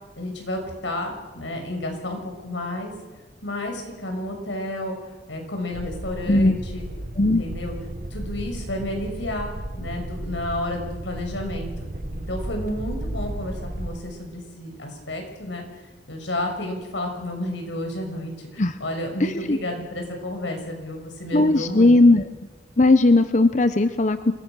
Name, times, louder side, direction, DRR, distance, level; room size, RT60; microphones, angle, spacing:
voice 1, 0.2-2.9 3.4-6.9 7.2-7.7 8.1-9.5 9.8-15.6 16.1-22.2, left 1 dB, 90° left, 3 dB, 6.2 m, -31 dB
sound 1, 5.7-14.0, right 1 dB, 50° right, 1.2 m, -34 dB
voice 2, 6.3-6.6 7.2-7.4 18.6-18.8 19.2-19.6 21.3-22.2 22.8-24.3, left 2 dB, 40° left, 10 dB, 0.8 m, -17 dB
27.0 x 22.0 x 6.3 m, 1.2 s
head